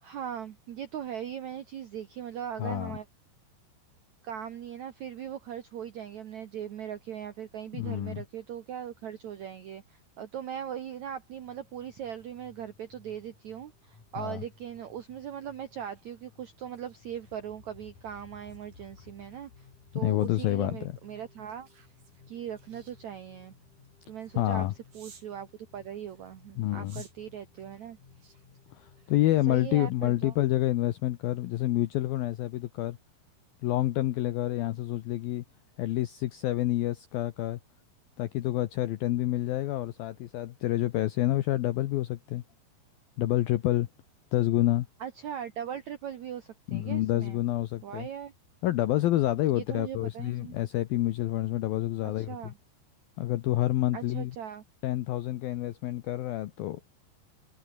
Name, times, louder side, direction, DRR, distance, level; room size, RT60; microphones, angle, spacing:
voice 1, 0.0-3.0 4.2-19.7 19.9-21.7 22.3-23.5 24.0-24.7 24.9-25.5 25.7-28.0 29.5-30.3 45.0-47.4 47.8-48.3 49.5-50.6 52.0-52.5 53.9-54.6, right 9 dB, 85° right, 1.6 m, -39 dB
voice 2, 2.6-3.0 7.7-8.2 14.2-14.4 19.9-20.9 24.4-24.7 26.6-27.0 28.7-33.0 33.6-35.4 35.8-37.6 38.2-42.4 43.2-43.9 44.3-44.9 46.7-48.1 48.6-52.5 53.2-54.4 54.8-56.8, left 15 dB, 75° left, 2.2 m, -28 dB
sound 1, 11.4-29.1, left 5 dB, 45° left, 5.7 m, -58 dB
sound 2, 14.5-25.4 26.0-29.6 30.0-30.3, right 5 dB, 50° right, 6.7 m, -61 dB
omnidirectional pair, 5.4 m